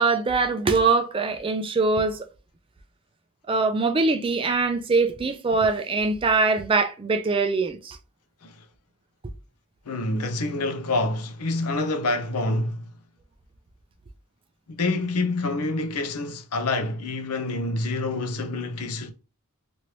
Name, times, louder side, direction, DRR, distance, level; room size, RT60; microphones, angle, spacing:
voice 1, 0.0-2.2 3.5-8.0, right 4 dB, 25° right, 0.3 m, -23 dB
voice 2, 9.9-12.8 14.8-19.1, left 2 dB, 85° left, 0.6 m, -27 dB
3.1 x 2.6 x 2.9 m
head